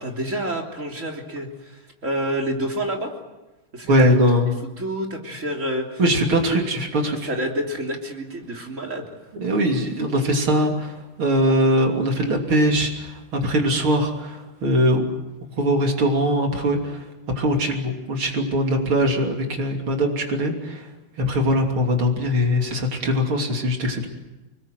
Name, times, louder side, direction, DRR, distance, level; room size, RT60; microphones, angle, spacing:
voice 1, 0.0-1.5 2.0-3.1 3.7-3.9 4.8-6.0 6.5-6.6 7.2-9.1, right 1 dB, 35° right, 1 dB, 3.6 m, -28 dB
voice 2, 3.9-4.5 6.0-7.3 9.3-15.1 15.6-17.0 17.3-20.8 21.3-24.1, equal, 80° right, 2 dB, 3.9 m, -21 dB
29.5 x 20.5 x 7.9 m, 1.1 s
omnidirectional pair, 2.3 m